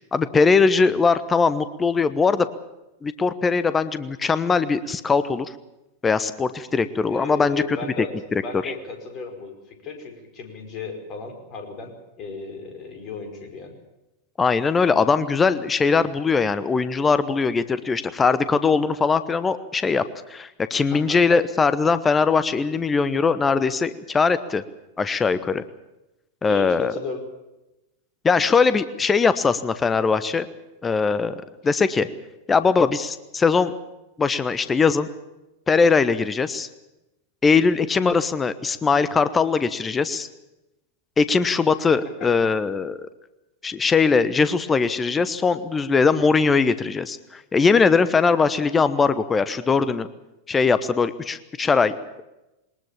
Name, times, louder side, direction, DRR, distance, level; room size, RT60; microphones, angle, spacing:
voice 1, 0.1-2.5 3.0-5.5 6.0-8.1 8.3-8.7 14.4-24.6 25.0-25.6 26.4-26.9 28.2-30.5 30.8-32.1 32.5-33.7 34.2-35.1 35.7-36.7 37.4-40.3 41.2-43.1 43.6-50.1 50.5-52.2, left 5 dB, 15° left, 14 dB, 1.1 m, -21 dB
voice 2, 7.1-8.1 8.4-13.7 20.9-21.2 26.5-27.2 42.0-42.3, left 4 dB, 35° left, 5 dB, 5.3 m, -35 dB
22.0 x 20.0 x 7.2 m, 0.96 s
figure-of-eight pair, 90°, 0 cm